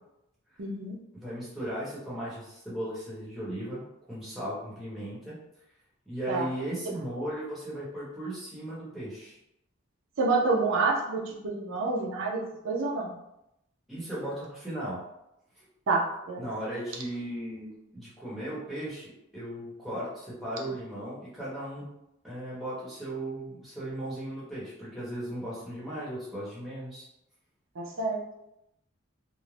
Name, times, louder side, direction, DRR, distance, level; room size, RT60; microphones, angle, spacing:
voice 1, 0.6-0.9 6.3-6.5 10.2-13.2 15.9-16.5 27.8-28.2, right 3 dB, 75° right, -2 dB, 0.5 m, -28 dB
voice 2, 1.1-3.8 4.1-5.3 6.1-9.4 13.9-15.0 15.6-15.7 16.4-21.8 22.2-27.0, right 1 dB, ahead, -10 dB, 1.0 m, -36 dB
2.5 x 2.1 x 3.2 m, 0.84 s
head